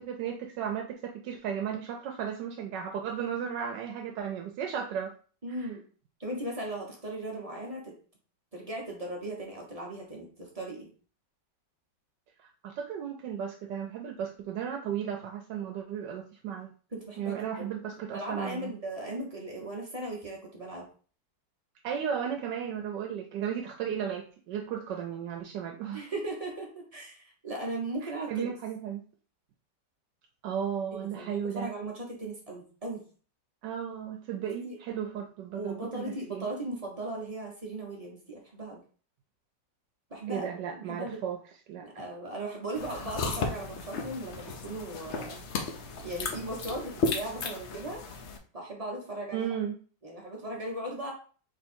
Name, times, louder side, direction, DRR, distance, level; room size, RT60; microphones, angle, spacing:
voice 1, 0.0-5.1 5.6-5.7 12.4-16.7 17.2-18.7 21.8-26.1 28.0-29.0 30.4-31.7 33.6-36.5 40.3-41.4 41.7-42.0 49.3-49.7, right 8 dB, 80° right, 2 dB, 1.2 m, -35 dB
voice 2, 5.4-5.8 6.2-7.9 8.5-10.9 16.9-17.7 18.1-20.8 25.9-28.5 30.9-33.0 34.4-34.8 35.5-38.8 40.1-41.2 41.8-45.4 46.0-48.0 48.5-49.6 50.0-51.1, right 1 dB, 25° right, -2 dB, 0.9 m, -38 dB
sound 1, 42.8-48.4, left 3 dB, 65° left, 0.7 m, -34 dB
3.6 x 3.1 x 4.3 m, 0.41 s
omnidirectional pair, 1.9 m